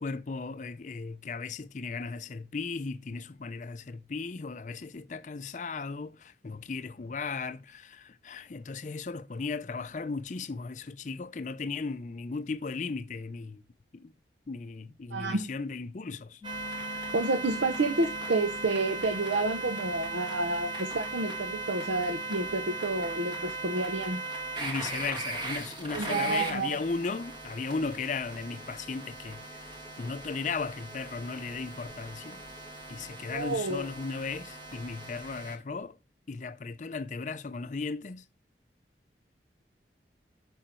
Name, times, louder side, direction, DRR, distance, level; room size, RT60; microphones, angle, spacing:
voice 1, 0.0-13.6 13.9-14.1 14.5-16.4 24.6-29.6 30.0-32.4 32.9-36.0 36.3-38.2, left 4 dB, 40° left, 0.5 m, -36 dB
voice 2, 15.1-15.4 16.8-24.2 25.9-26.8 33.3-33.9, right 2 dB, 90° right, 0.7 m, -30 dB
sound 1, 16.4-35.5, right 2 dB, 25° right, 1.6 m, -38 dB
sound 2, 16.4-23.4, left 7 dB, 50° right, 3.8 m, -48 dB
sound 3, 25.1-32.8 33.1-33.2 33.8-35.5 35.8-35.9, equal, 5° left, 3.9 m, -57 dB
9.0 x 5.6 x 4.3 m
head